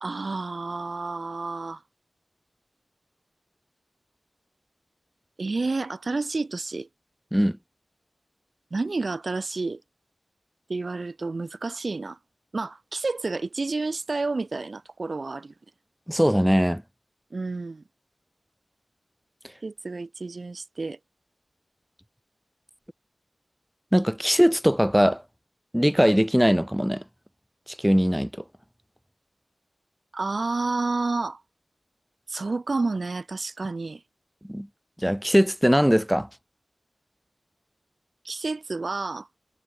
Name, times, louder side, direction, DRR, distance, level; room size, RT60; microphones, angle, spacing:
voice 1, 0.0-1.8 5.4-6.9 8.7-9.8 10.7-12.2 12.5-15.5 17.3-17.8 19.6-21.0 30.1-31.4 32.3-34.0 38.2-39.3, right 3 dB, 55° right, 0.6 m, -30 dB
voice 2, 16.1-16.8 23.9-25.2 25.7-27.0 27.7-28.3 34.4-34.7 35.0-36.3, equal, 5° right, 1.3 m, -21 dB
wide cardioid pair, 75°, 0 cm